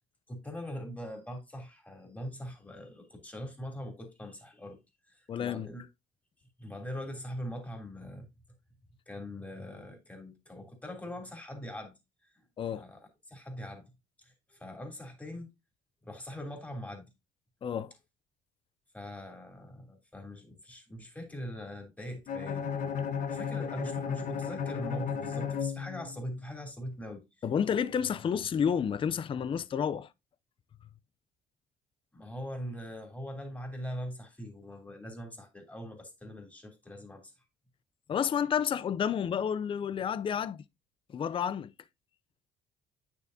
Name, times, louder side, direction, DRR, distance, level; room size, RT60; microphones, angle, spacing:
voice 1, 0.3-4.8 5.1-5.9 6.6-8.3 9.1-11.9 12.2-12.3 12.7-13.8 14.2-15.5 16.0-17.1 18.9-22.7 23.3-27.2 32.1-37.3, equal, 10° left, 3.1 m, -42 dB
voice 2, 5.3-5.7 12.6-12.8 17.6-17.9 27.4-30.1 38.1-40.6 41.1-41.7, left 8 dB, 30° left, 0.4 m, -30 dB
Bowed string instrument, 22.3-26.4, left 7 dB, 50° left, 1.2 m, -34 dB
9.0 x 7.0 x 2.7 m
cardioid pair, 110°, 17 cm